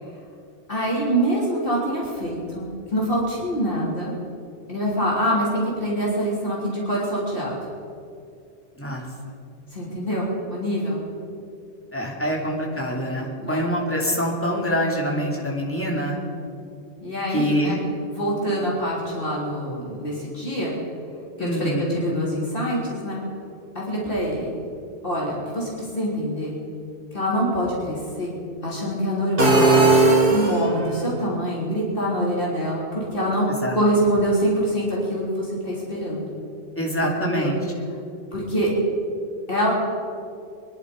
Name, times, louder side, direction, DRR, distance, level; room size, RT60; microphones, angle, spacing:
voice 1, 0.7-4.1 4.7-7.6 9.7-11.0 13.4-13.6 17.0-17.8 18.1-20.7 21.4-23.2 23.7-24.5 25.0-26.6 27.1-28.3 28.6-29.8 30.3-36.3 37.0-37.5 38.3-38.7 39.5-39.7, equal, 45° left, -5 dB, 3.8 m, -25 dB
voice 2, 11.9-16.2 17.3-17.8 21.4-22.0 33.6-33.8 36.8-37.6, equal, 10° left, -3 dB, 2.6 m, -25 dB
sound 1, 29.4-31.0, right 2 dB, 45° right, 2.1 m, -17 dB
24.0 x 11.0 x 5.3 m, 2.5 s
omnidirectional pair, 1.2 m